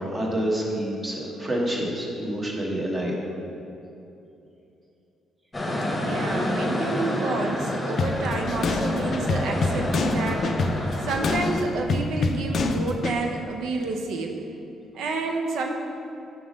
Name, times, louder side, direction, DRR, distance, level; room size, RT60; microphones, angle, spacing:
voice 1, 0.0-3.2, right 1 dB, 25° right, -2 dB, 1.1 m, -27 dB
sound 1, 5.5-11.6, left 1 dB, 15° left, 1.0 m, -29 dB
voice 2, 5.7-14.4 14.9-15.7, right 3 dB, 80° right, 2 dB, 0.7 m, -29 dB
sound 2, 8.0-13.2, left 3 dB, 55° left, 0.4 m, -27 dB
6.1 x 3.6 x 5.1 m, 2.8 s
cardioid pair, 90°, 0 cm